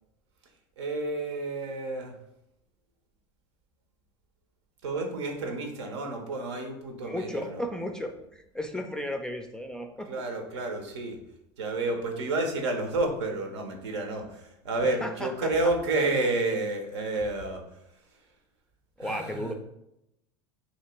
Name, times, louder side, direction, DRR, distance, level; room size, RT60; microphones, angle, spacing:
voice 1, 0.8-2.1 4.8-7.6 10.1-11.2 11.6-17.6 19.0-19.5, right 2 dB, 80° right, 4 dB, 0.8 m, -30 dB
voice 2, 7.0-10.1 10.6-10.7 15.0-15.5 19.0-19.5, left 1 dB, 5° left, 5 dB, 0.4 m, -34 dB
2.9 x 2.9 x 4.3 m, 0.83 s
hypercardioid pair, 90°, 14 cm